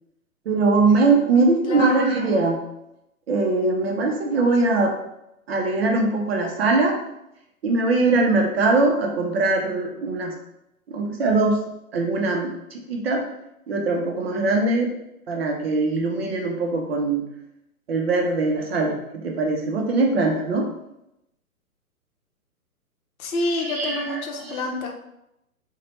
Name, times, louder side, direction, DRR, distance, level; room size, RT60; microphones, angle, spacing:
voice 1, 0.5-2.6 3.3-4.9 5.5-7.0 7.6-10.3 10.9-11.6 11.9-13.2 13.7-14.9 15.3-17.3 17.9-20.7 23.6-24.6, right 3 dB, 45° right, 1 dB, 0.5 m, -21 dB
voice 2, 1.7-2.1 23.2-24.9, left 2 dB, 65° left, 2 dB, 0.6 m, -27 dB
2.7 x 2.1 x 3.0 m, 0.85 s
hypercardioid pair, 130°, 45 cm